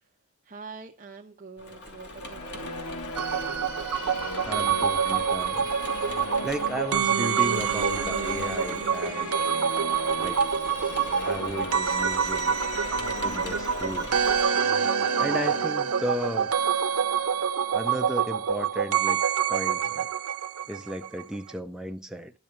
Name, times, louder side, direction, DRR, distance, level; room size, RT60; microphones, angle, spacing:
voice 1, 0.4-2.8, right 4 dB, 40° right, 0.9 m, -45 dB
Engine / Mechanisms, 1.6-14.4, equal, 50° left, 2.8 m, -41 dB
Musical instrument, 2.0-17.5, left 3 dB, 90° left, 1.2 m, -38 dB
sound 1, 3.1-21.2 21.5-21.6, right 7 dB, 80° right, 0.7 m, -26 dB
voice 2, 4.4-5.7 6.4-9.5 10.2-10.4 11.1-12.5 13.2-14.3 15.2-16.6 17.7-19.2 19.5-20.1 20.7-22.3, equal, 5° right, 0.5 m, -34 dB
11.0 x 5.9 x 5.2 m
head